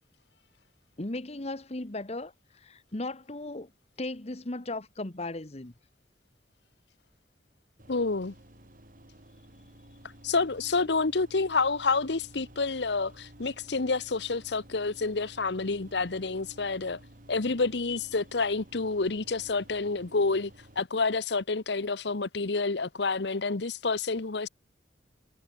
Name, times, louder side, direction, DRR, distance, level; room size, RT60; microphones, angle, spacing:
voice 1, 1.0-2.3 2.6-3.7 4.0-5.7, left 2 dB, 35° left, 1.4 m, -36 dB
sound 1, 7.8-20.8, right 1 dB, 50° right, 5.4 m, -53 dB
voice 2, 7.9-8.3 10.2-17.0 17.3-20.5 20.8-24.5, left 3 dB, 75° left, 1.0 m, -28 dB
head